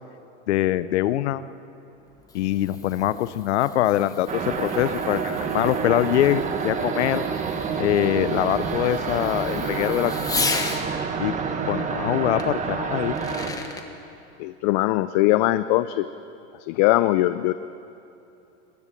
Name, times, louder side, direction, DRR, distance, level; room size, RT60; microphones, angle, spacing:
voice 1, 0.5-1.4 2.3-7.2 7.8-10.7 11.2-11.4 11.7-13.2, left 13 dB, 70° left, 15 dB, 0.8 m, -23 dB
Fireworks, 2.0-10.8 12.4-12.5 13.0-13.9, left 3 dB, 10° left, 1.4 m, -35 dB
sound 1, 4.3-13.5, right 5 dB, 20° right, 1.6 m, -28 dB
voice 2, 14.4-16.1 16.6-17.5, left 16 dB, 40° left, 13 dB, 0.5 m, -21 dB
21.5 x 14.0 x 8.9 m, 2.8 s
supercardioid pair, 135°, 36 cm